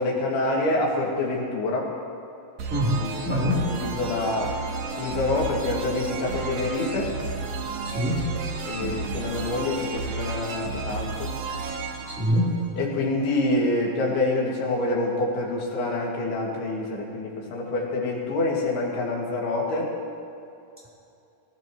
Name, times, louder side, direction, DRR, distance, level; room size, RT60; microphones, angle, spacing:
voice 1, 0.0-1.9 2.8-4.6 5.0-7.1 8.7-11.3 12.8-19.9, left 2 dB, 85° left, -3 dB, 4.2 m, -27 dB
sound 1, 2.6-13.2, right 4 dB, 60° right, 2.1 m, -32 dB
voice 2, 2.7-3.7 7.8-8.3 12.1-12.5, equal, 5° right, -7 dB, 2.9 m, -25 dB
20.5 x 17.5 x 3.1 m, 2.7 s
omnidirectional pair, 4.5 m